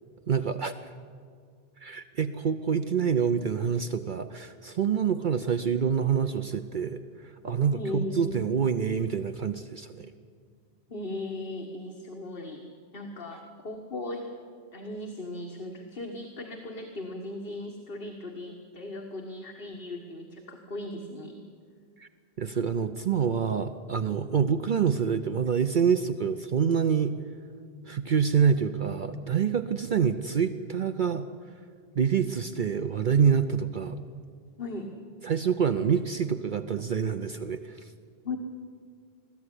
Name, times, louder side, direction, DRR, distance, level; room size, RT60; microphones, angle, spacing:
voice 1, 0.3-0.8 1.8-7.0 7.4-10.1 22.0-22.1 22.4-27.1 27.9-31.2 31.9-34.0 35.2-37.9, right 7 dB, 55° right, 9 dB, 0.8 m, -26 dB
voice 2, 7.7-8.4 10.9-14.3 14.7-21.4 34.6-34.9 38.2-38.4, left 2 dB, 60° left, 2 dB, 1.7 m, -37 dB
21.5 x 14.5 x 9.9 m, 2.1 s
omnidirectional pair, 1.1 m